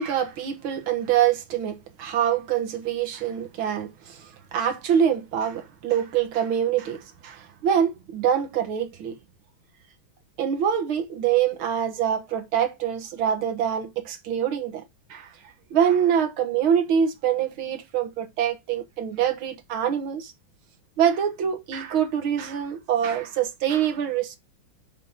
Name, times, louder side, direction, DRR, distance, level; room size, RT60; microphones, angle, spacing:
voice 1, 0.0-9.2 10.4-14.8 15.1-15.3 15.7-20.3 21.0-24.4, right 9 dB, 80° right, 2.2 m, -25 dB
9.7 x 3.7 x 4.4 m
omnidirectional pair, 2.2 m